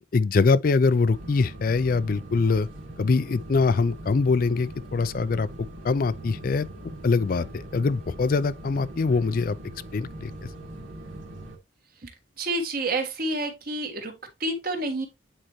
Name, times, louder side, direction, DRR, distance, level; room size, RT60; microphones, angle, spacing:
voice 1, 0.1-2.7 3.0-5.5 5.8-6.7 7.0-9.6 9.9-10.3, left 4 dB, 45° left, 0.4 m, -23 dB
sound 1, 1.1-11.6, right 1 dB, 85° right, 2.0 m, -41 dB
voice 2, 12.4-15.1, right 2 dB, 50° right, 1.6 m, -29 dB
8.7 x 4.4 x 3.1 m
head